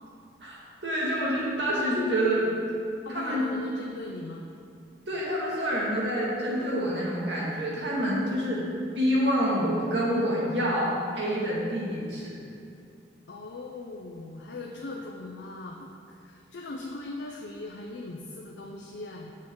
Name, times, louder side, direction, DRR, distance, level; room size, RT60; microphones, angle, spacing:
voice 1, 0.4-2.5 3.1-3.4 5.1-8.6 8.9-12.4, equal, 70° right, -5 dB, 1.9 m, -27 dB
voice 2, 3.0-4.5 13.3-19.3, left 2 dB, 75° left, 0 dB, 0.5 m, -39 dB
7.4 x 6.4 x 3.7 m, 2.4 s
head